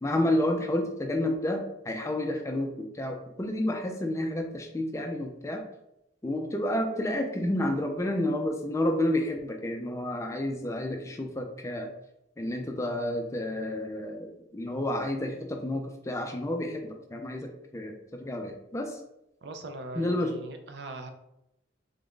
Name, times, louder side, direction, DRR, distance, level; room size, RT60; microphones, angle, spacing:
voice 1, 0.0-5.6 6.2-11.9 12.4-18.9 20.0-20.3, left 1 dB, 15° left, 4 dB, 0.3 m, -30 dB
voice 2, 19.4-21.1, right 2 dB, 60° right, 5 dB, 0.5 m, -40 dB
3.4 x 2.4 x 3.6 m, 0.84 s
head